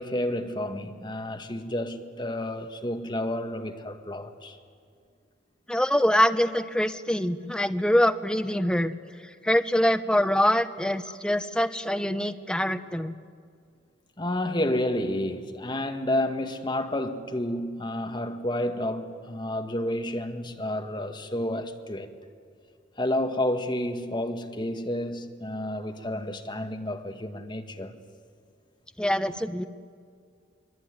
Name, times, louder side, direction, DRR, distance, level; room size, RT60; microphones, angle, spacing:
voice 1, 0.0-4.6 11.1-11.2 14.2-22.1 23.0-28.0, left 1 dB, 25° left, 1.8 m, -30 dB
voice 2, 5.7-8.9 9.2-13.1 29.0-29.7, equal, 5° left, 0.9 m, -24 dB
24.0 x 23.0 x 9.8 m
head